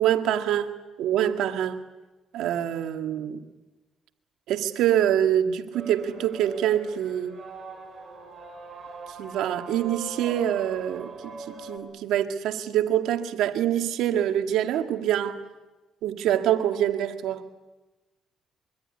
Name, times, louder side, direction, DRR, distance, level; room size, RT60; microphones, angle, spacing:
voice 1, 0.0-1.8 2.3-3.4 4.5-7.4 9.2-15.4 16.0-17.4, right 11 dB, 85° right, 1.8 m, -25 dB
sound 1, 5.7-11.8, right 4 dB, 45° right, 6.4 m, -41 dB
25.5 x 24.0 x 9.7 m
cardioid pair, 90°, 0 cm